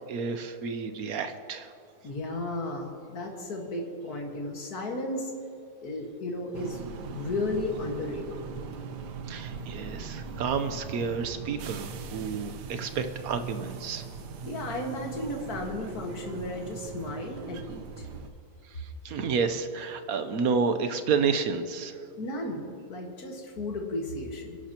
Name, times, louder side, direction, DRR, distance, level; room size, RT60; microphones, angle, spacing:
voice 1, 0.1-1.7 9.3-14.0 19.0-22.0, right 5 dB, 65° right, 9 dB, 1.3 m, -30 dB
voice 2, 2.0-5.3 5.8-8.2 14.4-18.1 22.2-24.6, left 2 dB, 65° left, 1 dB, 2.3 m, -34 dB
sound 1, 6.5-18.3, right 5 dB, 85° right, 1.5 m, -40 dB
29.5 x 11.5 x 3.0 m, 2.5 s
omnidirectional pair, 1.7 m